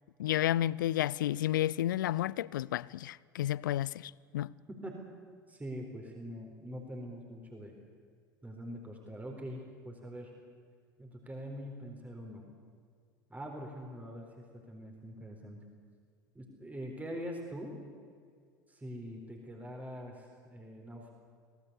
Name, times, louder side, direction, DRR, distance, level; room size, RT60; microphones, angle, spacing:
voice 1, 0.2-4.5, left 13 dB, 70° left, 0.5 m, -31 dB
voice 2, 5.5-7.7 8.4-10.3 11.0-12.4 13.3-15.6 16.3-17.7 18.7-21.1, equal, 15° right, 4.3 m, -44 dB
25.0 x 18.0 x 8.3 m
figure-of-eight pair, 70°, 11 cm